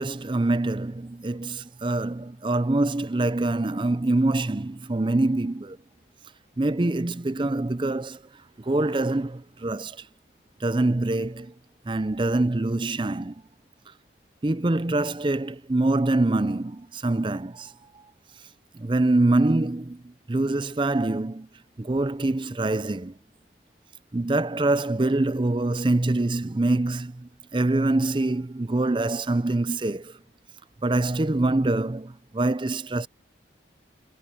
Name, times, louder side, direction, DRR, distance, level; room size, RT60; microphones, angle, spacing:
voice 1, 0.0-5.8 6.6-8.2 8.7-10.0 10.6-11.5 11.9-13.3 14.4-17.7 18.8-20.0 20.3-21.5 21.8-23.1 24.1-27.1 27.5-30.1 30.8-33.1, right 2 dB, 25° right, 0.5 m, -24 dB
head